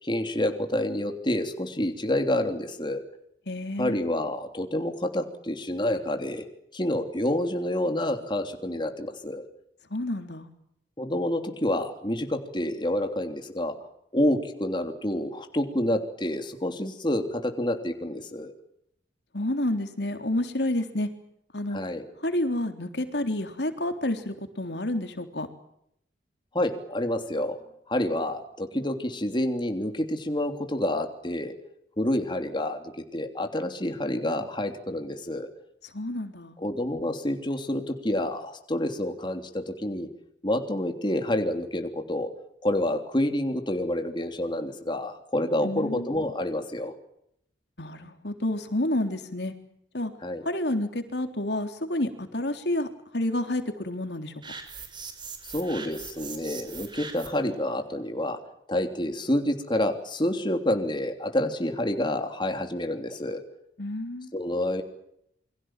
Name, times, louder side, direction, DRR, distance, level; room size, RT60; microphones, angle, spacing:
voice 1, 0.0-3.0 3.8-6.5 6.7-9.4 11.0-13.7 14.1-18.5 21.7-22.0 26.5-27.6 27.9-31.5 32.0-35.5 36.6-40.1 40.4-42.3 42.6-46.9 50.2-50.4 55.5-58.4 58.7-63.4 64.3-64.8, left 1 dB, 25° left, 5 dB, 3.1 m, -28 dB
voice 2, 3.5-4.0 9.9-10.5 19.3-21.1 21.5-21.8 22.2-25.5 35.9-36.6 45.6-46.1 47.8-49.5 49.9-50.1 50.4-52.9 53.1-54.3 63.8-64.3, left 1 dB, 70° left, 7 dB, 3.6 m, -29 dB
sound 1, 54.4-57.5, right 5 dB, 25° right, 5.5 m, -41 dB
29.0 x 24.5 x 7.5 m, 0.74 s
head